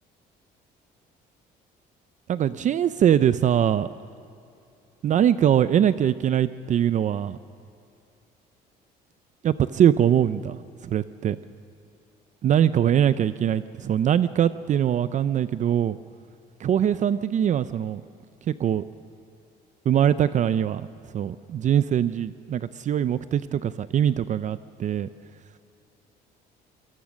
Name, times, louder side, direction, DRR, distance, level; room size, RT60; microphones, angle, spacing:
voice 1, 2.3-3.9 5.0-7.4 9.4-11.4 12.4-16.0 16.6-18.0 18.4-18.8 19.9-20.9 21.1-25.1, right 10 dB, 45° right, 14 dB, 0.5 m, -22 dB
25.5 x 19.0 x 6.4 m, 2.6 s
cardioid pair, 110°, 17 cm